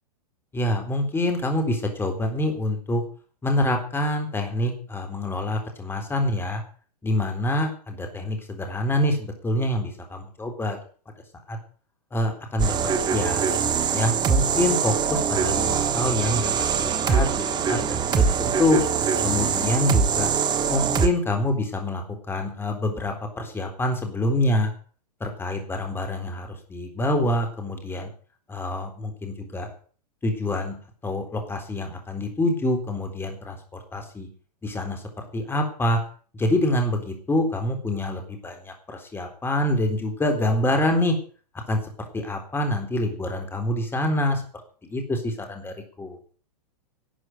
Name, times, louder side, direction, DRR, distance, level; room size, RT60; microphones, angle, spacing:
voice 1, 0.5-3.0 3.4-6.6 7.0-10.8 11.5-11.6 12.1-13.6 13.9-16.5 16.8-18.8 19.2-20.3 20.7-24.7 25.2-28.1 28.5-29.7 30.2-30.8 31.0-34.3 34.6-36.0 36.3-41.2 41.7-41.8 42.1-44.4 44.8-46.2, left 1 dB, 10° left, 4 dB, 3.8 m, -26 dB
sound 1, 12.6-21.1, right 6 dB, 20° right, 1.5 m, -23 dB
12.5 x 7.7 x 9.7 m, 0.42 s
hypercardioid pair, 120°, 20 cm